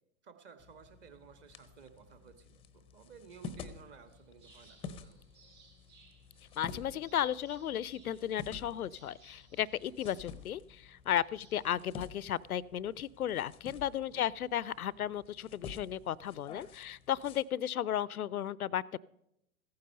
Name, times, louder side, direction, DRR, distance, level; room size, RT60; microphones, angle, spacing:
voice 1, 0.2-5.3 14.0-14.2, right 7 dB, 25° right, 9 dB, 1.4 m, -56 dB
sound 1, 0.6-17.4, left 5 dB, 15° left, 0.6 m, -50 dB
sound 2, 3.8-12.8, right 4 dB, 65° right, 5.2 m, -65 dB
voice 2, 6.6-19.0, left 10 dB, 85° left, 23 dB, 0.5 m, -34 dB
14.5 x 9.6 x 5.4 m, 0.82 s
hypercardioid pair, 115°, 43 cm